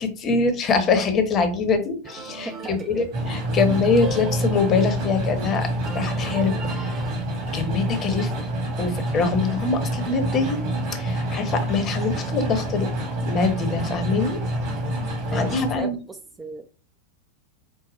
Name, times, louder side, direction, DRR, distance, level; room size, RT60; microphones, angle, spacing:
voice 1, 0.0-5.7 5.9-7.0 7.5-8.3 8.8-10.6 10.9-12.9 13.2-14.4 15.3-16.0, left 4 dB, 30° left, 7 dB, 0.9 m, -24 dB
sound 1, 2.0-7.2, right 3 dB, 30° right, 0.9 m, -40 dB
voice 2, 2.4-3.1 15.3-16.7, right 3 dB, 15° right, 5 dB, 0.4 m, -35 dB
sound 2, 3.1-15.7, right 1 dB, 50° right, 1.5 m, -27 dB
4.8 x 2.1 x 4.1 m, 0.36 s
figure-of-eight pair, 90°, 0 cm